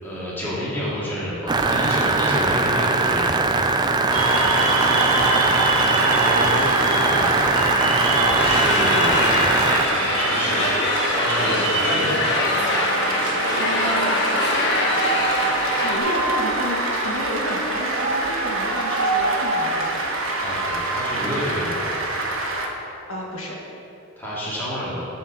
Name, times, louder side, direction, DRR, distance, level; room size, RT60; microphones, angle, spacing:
voice 1, 0.0-3.5 6.1-7.5 8.0-12.3 20.4-21.9 24.2-25.0, equal, 10° left, -9 dB, 2.2 m, -29 dB
sound 1, 1.5-9.9, right 3 dB, 20° right, 0.3 m, -21 dB
Cheering / Applause, 4.1-22.7, right 2 dB, 65° right, 1.3 m, -24 dB
sound 2, 8.4-16.0, left 2 dB, 55° left, 1.1 m, -24 dB
voice 2, 13.6-14.2 15.7-20.0 23.1-23.5, equal, 70° left, -2 dB, 1.8 m, -31 dB
11.0 x 4.3 x 6.9 m, 2.8 s
head